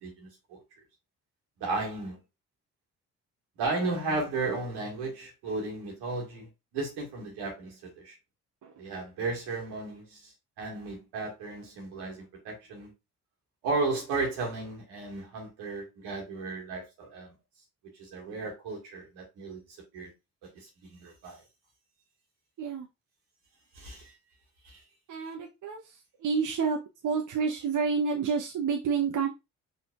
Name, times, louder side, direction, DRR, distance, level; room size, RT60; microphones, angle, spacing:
voice 1, 0.0-0.6 1.6-2.2 3.6-8.2 8.8-12.9 13.6-17.3 18.0-19.6 19.9-20.1 20.6-21.4 23.7-24.1 24.6-24.8, right 3 dB, 75° right, 2.0 m, -34 dB
voice 2, 25.1-25.8 26.2-26.8 27.0-29.3, right 5 dB, 50° right, 0.9 m, -28 dB
5.7 x 3.7 x 2.5 m
hypercardioid pair, 45°, 41 cm